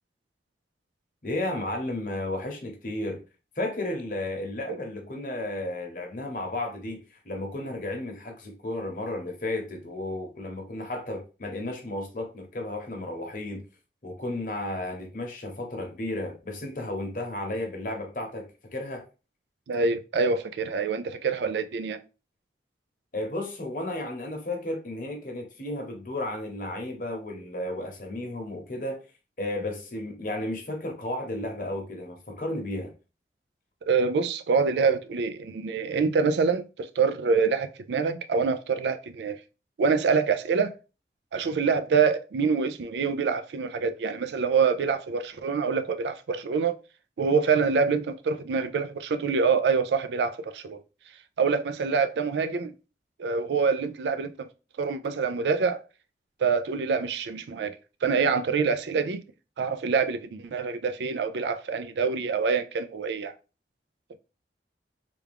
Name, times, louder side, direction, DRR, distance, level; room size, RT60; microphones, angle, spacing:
voice 1, 1.2-3.2 3.6-7.0 7.2-13.6 14.0-19.0 23.1-29.0 29.4-32.9, left 1 dB, 50° left, 0.9 m, -33 dB
voice 2, 19.7-22.0 33.9-39.4 39.8-40.7 41.3-46.8 47.2-50.8 51.4-52.7 53.2-54.5 54.8-55.8 56.4-59.2 59.6-63.3, right 5 dB, 80° right, 0.4 m, -26 dB
3.4 x 2.3 x 3.4 m
head